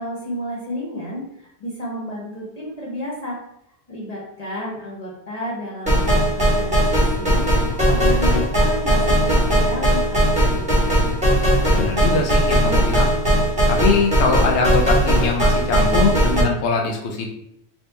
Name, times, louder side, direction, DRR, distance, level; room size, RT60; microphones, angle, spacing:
voice 1, 0.0-3.4 3.9-11.0, equal, 40° left, -5 dB, 0.8 m, -32 dB
sound 1, 5.9-16.4, equal, 5° right, 1.1 m, -18 dB
voice 2, 11.7-13.1 13.7-17.3, left 4 dB, 75° left, 1 dB, 0.9 m, -22 dB
2.9 x 2.6 x 3.3 m, 0.74 s
omnidirectional pair, 1.2 m